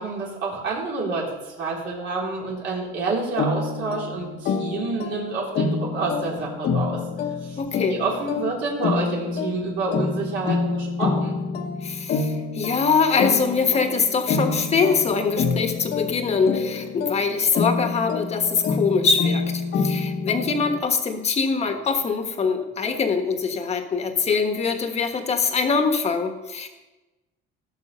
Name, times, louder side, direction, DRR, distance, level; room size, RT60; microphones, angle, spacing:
voice 1, 0.0-7.0 7.4-7.6 7.9-11.4, right 3 dB, 60° right, -4 dB, 3.6 m, -28 dB
sound 1, 3.4-20.8, left 4 dB, 50° left, 1.2 m, -27 dB
voice 2, 7.6-8.0 11.8-26.7, left 5 dB, 30° left, 6 dB, 1.4 m, -23 dB
18.0 x 6.4 x 5.5 m, 1.1 s
cardioid pair, 155°, 21 cm